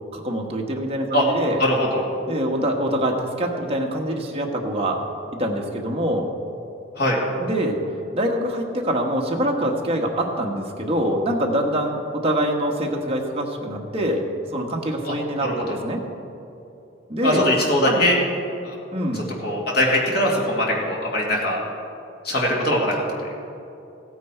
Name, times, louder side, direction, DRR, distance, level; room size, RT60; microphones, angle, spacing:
voice 1, 0.1-1.6 2.3-5.0 5.4-6.3 7.4-7.8 8.1-14.2 14.5-16.0 17.1-17.5 17.8-18.0 18.9-19.2, right 1 dB, 30° right, 0 dB, 1.3 m, -24 dB
voice 2, 1.6-2.0 7.0-7.2 15.0-15.2 15.4-15.8 17.2-18.2 18.6-18.8 19.1-21.6 22.2-23.0, left 1 dB, 55° left, -2 dB, 2.4 m, -21 dB
15.5 x 9.4 x 4.5 m, 2.7 s
head